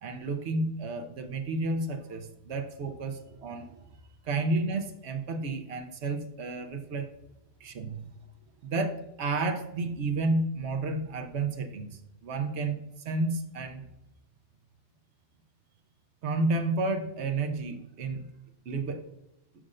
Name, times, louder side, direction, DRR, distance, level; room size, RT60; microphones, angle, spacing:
voice 1, 0.0-3.8 4.2-7.1 7.6-8.0 8.6-13.8 16.2-18.3 18.7-19.1, right 3 dB, 65° right, 6 dB, 1.0 m, -31 dB
6.3 x 6.1 x 2.5 m, 0.87 s
omnidirectional pair, 1.2 m